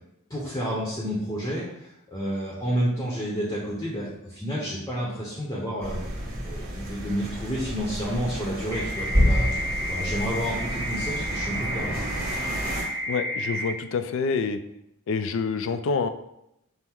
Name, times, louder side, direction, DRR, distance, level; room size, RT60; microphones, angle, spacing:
voice 1, 0.3-6.0 6.4-9.5 9.9-12.0, equal, 15° left, -5 dB, 0.7 m, -30 dB
sound 1, 5.8-12.8, equal, 40° right, 1.4 m, -29 dB
sound 2, 8.7-13.7, equal, 15° right, 1.1 m, -31 dB
voice 2, 13.1-14.6 15.1-16.1, left 5 dB, 65° left, 11 dB, 0.3 m, -27 dB
5.5 x 2.0 x 4.4 m, 0.81 s
head